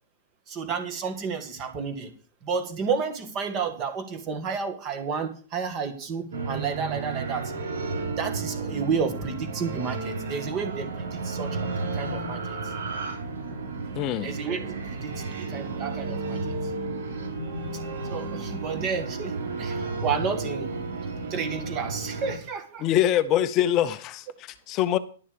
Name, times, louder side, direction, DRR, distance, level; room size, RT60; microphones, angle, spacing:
voice 1, 0.5-2.1 2.5-7.5 8.2-11.7 12.0-12.4 14.2-15.1 15.5-16.4 18.1-19.7 20.0-20.8 21.3-22.8, right 5 dB, 20° right, 2.0 m, -31 dB
sound 1, 6.3-22.4, right 3 dB, 80° right, 4.0 m, -32 dB
voice 2, 13.9-14.3 22.8-25.0, left 11 dB, 25° left, 0.7 m, -24 dB
11.5 x 7.2 x 6.9 m
hypercardioid pair, 170°, 0 cm